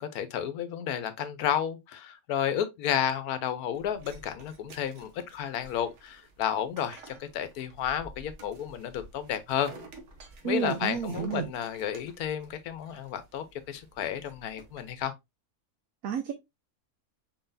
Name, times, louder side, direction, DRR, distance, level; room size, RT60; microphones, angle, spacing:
voice 1, 0.0-9.7 10.4-15.1, left 9 dB, 90° left, 1.2 m, -32 dB
sound 1, 3.7-15.0, right 2 dB, 55° right, 1.2 m, -52 dB
voice 2, 10.4-11.5 16.0-16.3, right 8 dB, 70° right, 1.0 m, -30 dB
4.3 x 3.9 x 2.6 m
omnidirectional pair, 1.6 m